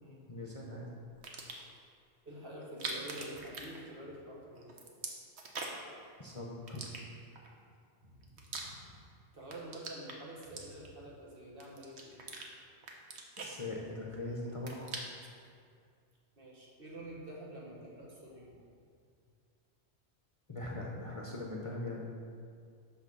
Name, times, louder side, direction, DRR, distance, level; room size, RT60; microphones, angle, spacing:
voice 1, 0.3-0.9 6.2-6.8 13.4-15.0 20.5-22.0, left 2 dB, 30° left, -2 dB, 0.8 m, -41 dB
sound 1, 1.1-1.8 2.6-4.3 4.6-5.9 6.7-7.5 8.0-9.1 9.4-11.1 11.6-12.5 12.8-14.2 14.5-15.4, right 3 dB, 75° right, 1.2 m, -44 dB
voice 2, 2.2-4.7 5.4-5.7 9.3-12.3 16.4-18.6, right 1 dB, 55° right, -4 dB, 1.7 m, -48 dB
6.8 x 6.0 x 5.4 m, 2.2 s
omnidirectional pair, 1.2 m